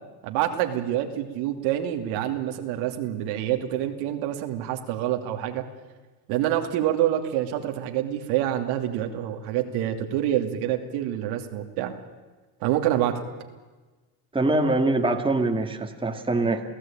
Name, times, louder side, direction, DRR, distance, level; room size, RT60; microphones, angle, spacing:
voice 1, 0.2-5.6 6.3-11.9 12.6-13.2, right 12 dB, 75° right, 4 dB, 2.8 m, -27 dB
voice 2, 14.3-16.6, right 2 dB, 10° right, 4 dB, 2.1 m, -23 dB
28.5 x 16.5 x 8.9 m, 1.3 s
supercardioid pair, 110°, 49 cm